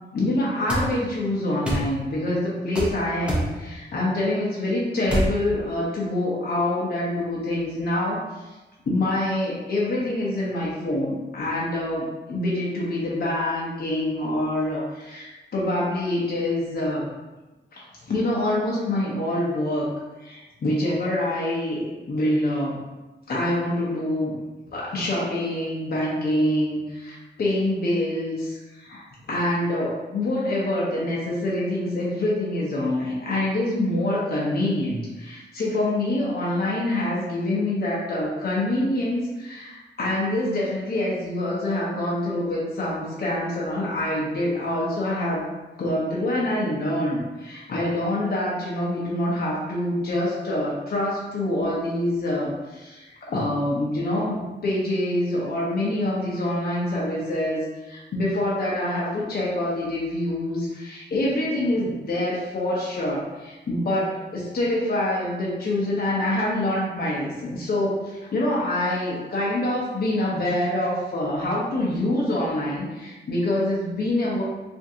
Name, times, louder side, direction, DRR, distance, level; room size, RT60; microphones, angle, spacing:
voice 1, 0.1-8.5 8.9-17.1 17.7-19.9 20.2-22.8 23.3-24.4 24.7-45.4 45.8-74.4, left 1 dB, 55° left, -6 dB, 0.7 m, -26 dB
sound 1, 0.7-0.9 1.6-1.9 2.7-2.9 3.3-3.5 5.1-5.3, right 1 dB, 5° right, 0.7 m, -24 dB
3.5 x 2.5 x 2.7 m, 1.1 s
wide cardioid pair, 145°, 19 cm